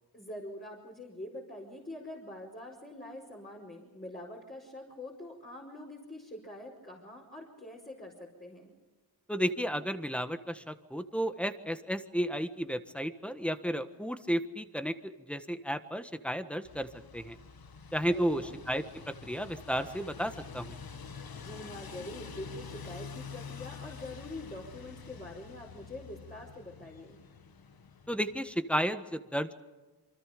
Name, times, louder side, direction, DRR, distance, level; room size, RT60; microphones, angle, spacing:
voice 1, 0.1-8.7 18.1-18.6 21.3-27.2, left 1 dB, 20° left, -3 dB, 5.0 m, -45 dB
voice 2, 9.3-16.9 17.1-17.4 17.9-18.8 19.2-20.8 28.1-29.5, equal, 5° left, 10 dB, 1.4 m, -33 dB
sound 1, 16.6-28.4, left 6 dB, 65° left, 1.6 m, -47 dB
28.0 x 25.0 x 5.2 m, 1.2 s
wide cardioid pair, 105°, 39 cm